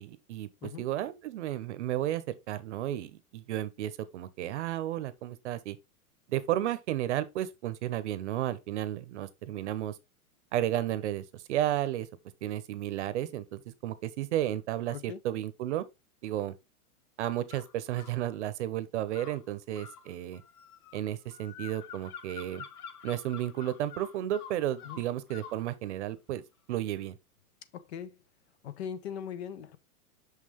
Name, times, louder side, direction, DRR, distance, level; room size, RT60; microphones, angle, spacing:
voice 1, 0.0-5.8 6.3-9.9 10.5-12.1 12.4-15.8 16.2-16.5 17.2-20.4 20.9-22.6 23.0-26.4 26.7-27.2, right 12 dB, 50° right, 0.8 m, -33 dB
voice 2, 14.9-15.2 24.8-25.0 27.7-28.2 28.6-29.8, left 8 dB, 45° left, 0.6 m, -40 dB
sound 1, 17.5-18.2 19.1-25.6, left 7 dB, 80° left, 1.1 m, -47 dB
6.1 x 5.6 x 3.1 m
supercardioid pair, 160°, 45 cm